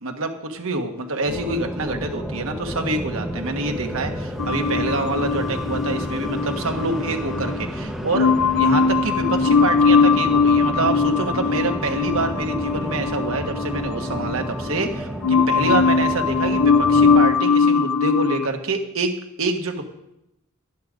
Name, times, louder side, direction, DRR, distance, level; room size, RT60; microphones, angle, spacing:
voice 1, 0.0-19.1 19.4-19.8, right 3 dB, 65° right, 4 dB, 1.5 m, -26 dB
sound 1, 1.3-17.3, right 1 dB, ahead, 0.8 m, -31 dB
sound 2, 4.4-7.7 8.1-14.9 15.2-18.5, left 5 dB, 80° left, 0.6 m, -20 dB
11.5 x 11.0 x 5.1 m, 0.86 s
head